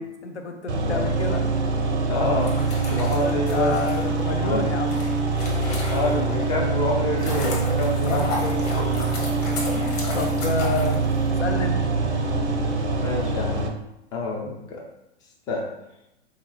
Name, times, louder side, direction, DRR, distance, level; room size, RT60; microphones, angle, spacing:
voice 1, 0.0-1.4 3.2-5.0 8.0-9.3 9.7-11.0 11.4-11.9, left 3 dB, 80° left, 5 dB, 0.7 m, -30 dB
sound 1, 0.7-13.7, right 3 dB, 75° right, 0.7 m, -24 dB
voice 2, 2.1-3.8 4.3-4.8 5.9-8.3 13.0-13.7 14.1-14.9 15.5-15.7, left 2 dB, 10° left, -1 dB, 0.3 m, -27 dB
sound 2, 2.3-6.4 6.9-11.6, left 2 dB, 35° left, 1.1 m, -35 dB
3.7 x 2.8 x 3.0 m, 0.87 s
figure-of-eight pair, 110°, 34 cm